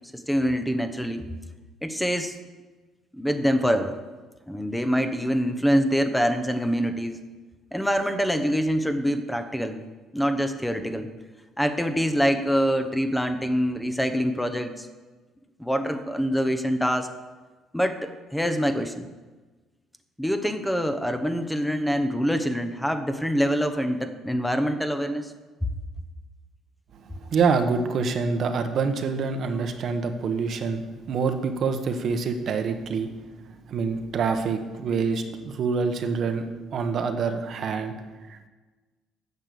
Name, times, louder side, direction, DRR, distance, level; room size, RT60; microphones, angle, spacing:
voice 1, 0.1-1.3 1.8-2.3 3.1-4.0 4.5-7.2 7.7-9.8 10.1-11.1 11.6-14.9 15.6-17.1 17.7-19.1 20.2-25.3, equal, 5° left, 7 dB, 0.8 m, -25 dB
voice 2, 27.3-33.1 33.7-38.5, right 5 dB, 60° right, 7 dB, 1.1 m, -26 dB
9.4 x 6.7 x 6.8 m, 1.3 s
cardioid pair, 90°, 0 cm